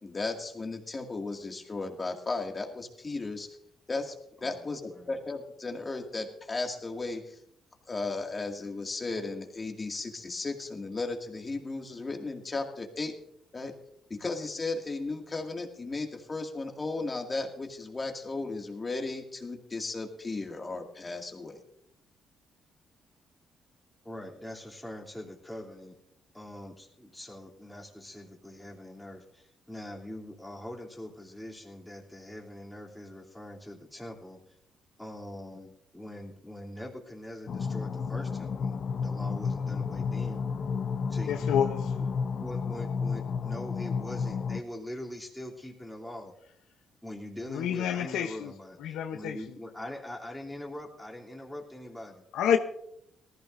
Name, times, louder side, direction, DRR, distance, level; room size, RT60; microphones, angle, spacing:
voice 1, 0.0-3.5 3.9-4.1 4.4-7.4 7.9-13.1 13.5-13.7 14.1-21.6, left 3 dB, 30° left, 2.2 m, -35 dB
voice 2, 24.0-26.0 26.3-34.4 35.0-40.4 41.1-41.5 42.4-46.3 47.0-52.2, left 1 dB, 5° left, 3.0 m, -43 dB
sound 1, 37.5-44.6, left 5 dB, 50° left, 0.6 m, -31 dB
voice 3, 41.3-41.9 47.5-48.5 48.8-49.4 52.3-52.6, left 8 dB, 85° left, 0.8 m, -28 dB
18.5 x 15.0 x 2.6 m
cardioid pair, 90°, 0 cm